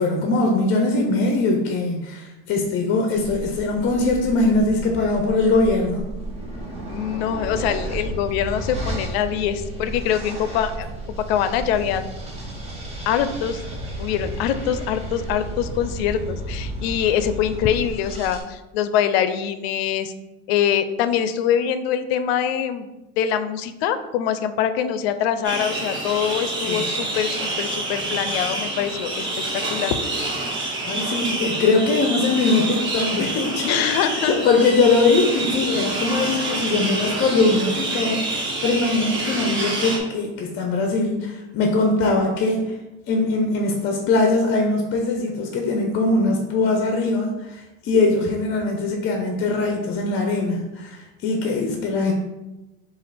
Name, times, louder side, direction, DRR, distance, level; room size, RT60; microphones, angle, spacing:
voice 1, 0.0-6.1 26.7-26.9 30.8-33.8 34.2-42.8 43.1-52.1, left 3 dB, 40° left, 2 dB, 0.6 m, -21 dB
sound 1, 3.1-18.4, right 1 dB, 20° right, 1.0 m, -33 dB
voice 2, 6.9-10.9 11.3-12.1 13.1-13.6 14.0-20.1 20.5-22.9 23.2-29.3 29.7-30.0 33.6-34.3, left 9 dB, 85° left, 11 dB, 0.5 m, -24 dB
sound 2, 25.4-40.0, right 2 dB, 40° right, 1.2 m, -27 dB
5.1 x 2.4 x 4.1 m, 1.0 s
supercardioid pair, 140°, 31 cm